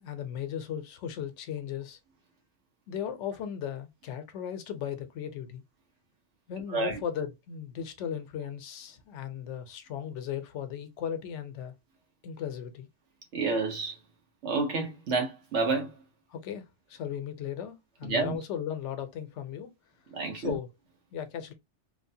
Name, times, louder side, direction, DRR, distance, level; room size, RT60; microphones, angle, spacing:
voice 1, 0.0-2.0 2.9-5.6 6.5-11.7 12.2-12.9 16.3-19.7 20.3-20.7 21.1-21.5, left 9 dB, 85° left, 0.9 m, -36 dB
voice 2, 13.3-14.0 14.4-16.0 18.0-18.4 20.1-20.6, right 3 dB, 80° right, 1.2 m, -29 dB
3.1 x 2.1 x 2.6 m
omnidirectional pair, 1.2 m